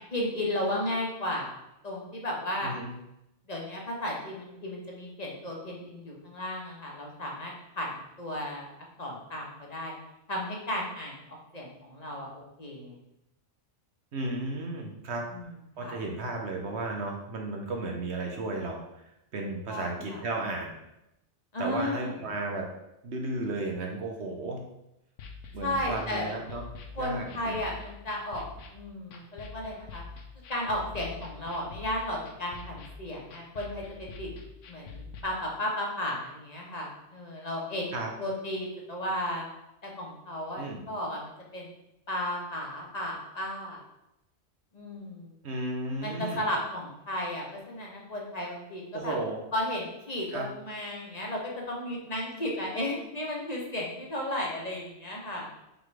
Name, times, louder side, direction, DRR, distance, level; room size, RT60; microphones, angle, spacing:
voice 1, 0.0-1.5 1.8-2.7 3.5-8.7 9.0-9.9 10.3-11.2 11.5-13.0 15.3-15.5 15.8-16.0 19.7-20.2 21.5-22.2 25.6-26.3 26.9-28.4 28.7-30.0 30.5-34.3 34.7-37.9 38.2-39.5 39.8-41.7 42.1-43.8 44.7-45.4 46.0-49.1 49.5-55.4, left 1 dB, 35° left, -2 dB, 1.4 m, -34 dB
voice 2, 14.1-15.3 15.8-19.0 19.3-20.8 21.6-22.7 23.0-24.6 25.5-26.6 27.0-27.6 37.9-38.1 40.6-40.8 45.4-46.4 48.9-49.4 50.3-50.5, right 2 dB, 65° right, 1 dB, 1.1 m, -34 dB
sound 1, 25.2-35.2, left 4 dB, 90° left, 1.1 m, -45 dB
5.6 x 3.9 x 4.7 m, 0.86 s
omnidirectional pair, 1.2 m